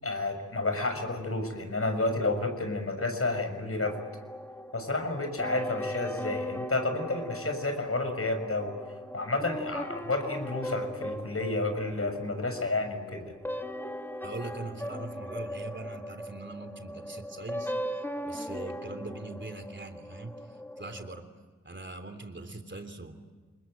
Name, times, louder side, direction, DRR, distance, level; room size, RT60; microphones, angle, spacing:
voice 1, 0.0-3.9 4.7-8.7 9.1-13.2, left 2 dB, 50° left, 7 dB, 6.6 m, -30 dB
sound 1, 3.8-21.2, equal, 5° left, 2.7 m, -39 dB
voice 2, 14.1-21.3 21.6-23.3, right 2 dB, 40° right, 8 dB, 3.3 m, -42 dB
28.5 x 21.5 x 9.0 m, 1.4 s
cardioid pair, 45°, 30 cm